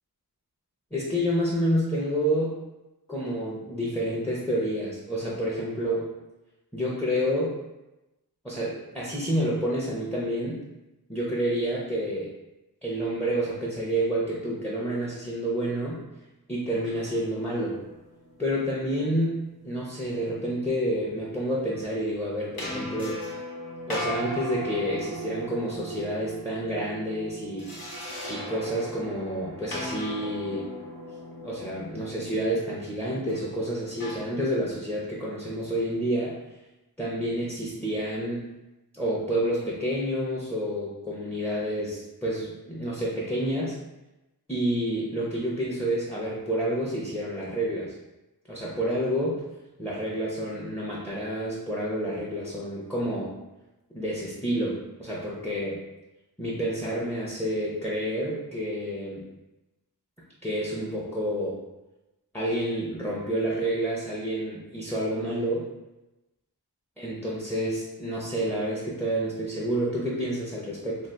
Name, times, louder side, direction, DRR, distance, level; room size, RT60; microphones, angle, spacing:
voice 1, 0.9-2.5 3.1-6.1 6.7-7.5 8.4-10.6 11.1-12.3 12.8-16.0 16.5-17.8 18.4-19.4 19.6-23.2 23.9-27.7 28.3-30.7 31.4-36.4 37.0-38.5 39.0-43.7 44.5-47.9 48.5-49.4 49.8-53.3 53.9-55.8 56.4-59.2 60.4-61.6 62.3-65.7 67.0-71.0, equal, 5° left, -5 dB, 0.7 m, -29 dB
sound 1, 16.8-18.9 22.6-34.2, equal, 65° left, 1.0 m, -38 dB
2.6 x 2.4 x 3.3 m, 0.99 s
wide cardioid pair, 45°, 38 cm